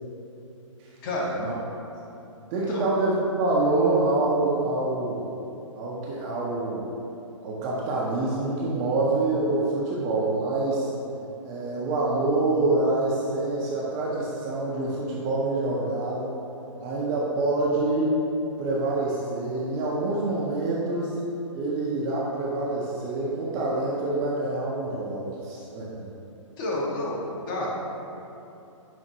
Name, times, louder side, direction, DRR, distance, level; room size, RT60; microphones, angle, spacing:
voice 1, 1.0-1.4 2.7-2.9 26.6-27.7, left 1 dB, 40° left, -4 dB, 0.8 m, -29 dB
voice 2, 2.5-5.2 5.8-6.9 7.4-10.9 11.4-16.3 16.8-18.1 18.6-21.1 21.5-26.1, right 2 dB, 20° right, -5 dB, 0.4 m, -26 dB
5.0 x 2.5 x 2.7 m, 2.9 s
hypercardioid pair, 135°, 17 cm